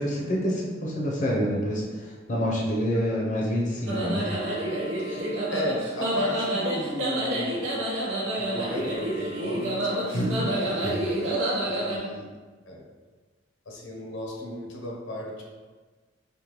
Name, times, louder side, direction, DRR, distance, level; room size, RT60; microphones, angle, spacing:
voice 1, 0.0-4.3 5.1-5.2 10.1-10.5 10.8-11.0, equal, 40° left, -4 dB, 0.6 m, -27 dB
sound 1, 3.9-12.0, right 1 dB, 90° right, 0.8 m, -29 dB
voice 2, 5.5-7.7 8.4-10.8 11.7-12.3 12.7-12.8 13.7-15.4, left 1 dB, 85° left, -1 dB, 0.8 m, -34 dB
5.1 x 2.2 x 3.0 m, 1.4 s
head